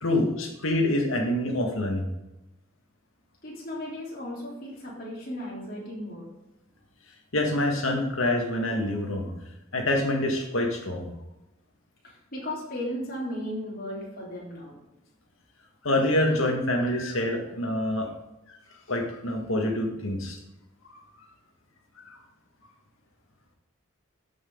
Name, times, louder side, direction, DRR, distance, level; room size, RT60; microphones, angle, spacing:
voice 1, 0.0-2.1 7.3-9.3 9.7-11.1 15.8-18.1 18.9-20.4 22.1-22.2, left 1 dB, 85° left, 2 dB, 2.0 m, -26 dB
voice 2, 3.4-6.3 12.3-14.7, left 1 dB, 45° left, -5 dB, 3.2 m, -35 dB
12.5 x 6.4 x 3.9 m, 0.94 s
head